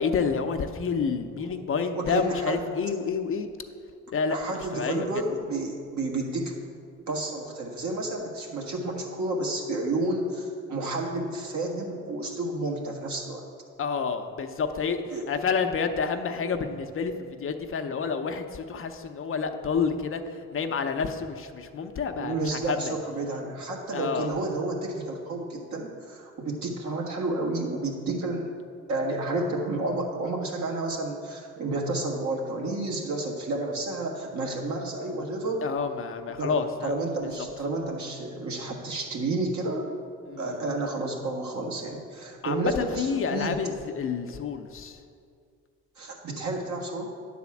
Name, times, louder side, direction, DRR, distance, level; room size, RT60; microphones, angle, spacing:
voice 1, 0.0-3.5 4.1-4.4 4.7-5.1 13.8-17.1 17.4-20.2 20.5-22.9 23.9-24.3 35.6-36.9 40.3-40.5 42.4-45.0, left 5 dB, 45° left, 6 dB, 0.7 m, -29 dB
voice 2, 1.9-2.7 4.3-6.5 7.1-13.4 15.1-15.3 22.2-28.5 28.9-35.7 36.4-39.9 40.4-43.6 46.0-47.1, right 2 dB, 65° right, 0 dB, 1.6 m, -31 dB
9.5 x 4.2 x 7.1 m, 2.3 s
cardioid pair, 90°, 30 cm